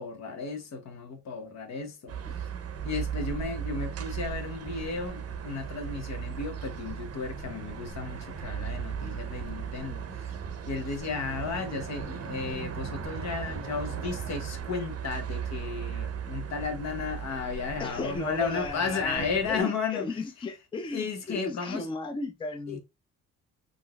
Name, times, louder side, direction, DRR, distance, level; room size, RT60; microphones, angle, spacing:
voice 1, 0.0-2.5 2.8-10.4 10.7-20.2 20.9-21.9 22.7-22.8, left 5 dB, 60° left, 0.9 m, -34 dB
sound 1, 2.1-19.6, right 7 dB, 55° right, 0.6 m, -37 dB
voice 2, 17.8-22.8, left 3 dB, 15° left, 0.5 m, -35 dB
3.8 x 2.5 x 2.2 m
cardioid pair, 90°, 30 cm